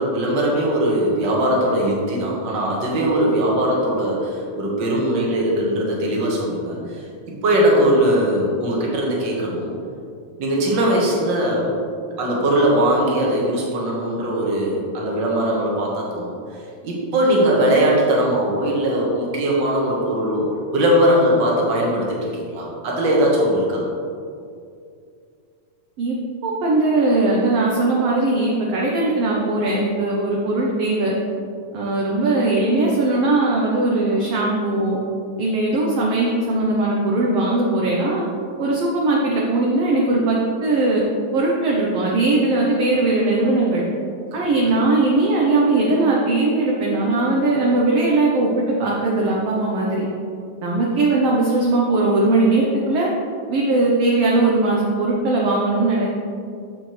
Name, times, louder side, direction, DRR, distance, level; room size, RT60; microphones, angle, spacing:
voice 1, 0.0-7.0 7.4-9.8 10.4-11.7 12.2-16.4 16.8-23.8 44.3-44.8, right 1 dB, 45° right, -3 dB, 1.7 m, -20 dB
voice 2, 26.4-31.1 31.7-35.0 35.4-38.2 38.6-41.0 41.3-43.8 44.3-50.1 50.6-53.1 53.5-56.1, right 2 dB, 70° right, -3 dB, 1.5 m, -19 dB
8.8 x 7.4 x 3.2 m, 2.4 s
omnidirectional pair, 3.7 m